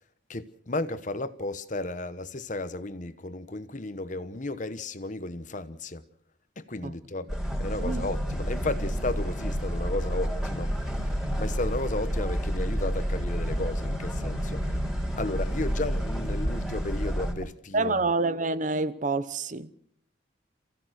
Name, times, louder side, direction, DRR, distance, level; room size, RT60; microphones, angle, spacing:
voice 1, 0.3-6.0 6.6-10.7 11.4-14.7 15.2-18.0, left 2 dB, 40° left, 1.0 m, -34 dB
sound 1, 7.3-17.3, equal, ahead, 4.1 m, -29 dB
sound 2, 8.4-17.4, left 1 dB, 25° left, 3.1 m, -50 dB
voice 2, 17.7-19.7, right 3 dB, 40° right, 0.9 m, -27 dB
28.5 x 16.0 x 6.4 m
head